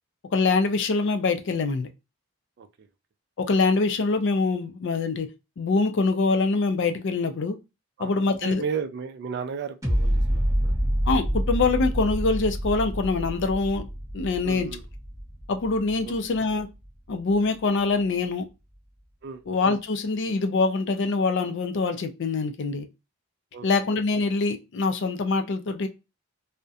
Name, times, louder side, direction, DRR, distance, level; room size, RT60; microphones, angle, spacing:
voice 1, 0.3-1.9 3.4-5.3 5.6-7.6 8.0-8.6 11.1-13.9 14.1-14.7 15.5-16.7 17.1-18.5 19.5-22.9 23.6-25.9, left 3 dB, 55° left, 0.4 m, -24 dB
voice 2, 8.0-10.8 14.4-14.8 16.0-16.1 19.2-19.4 23.5-23.7, right 6 dB, 50° right, 0.3 m, -34 dB
sound 1, 9.8-16.9 17.3-17.4, equal, 15° right, 0.9 m, -27 dB
2.7 x 2.1 x 2.3 m
head